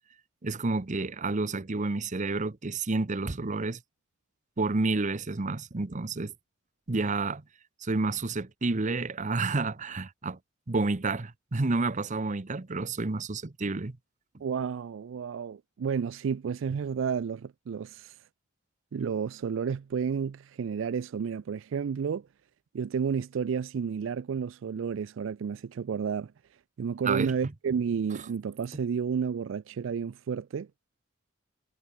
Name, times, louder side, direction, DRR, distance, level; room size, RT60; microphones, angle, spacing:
voice 1, 0.4-3.8 4.6-6.3 6.9-7.4 7.8-10.4 10.7-14.0 27.0-27.3, right 3 dB, 40° right, 0.8 m, -30 dB
voice 2, 14.4-18.2 18.9-22.3 22.7-26.3 26.8-30.7, right 6 dB, 65° right, 0.4 m, -31 dB
head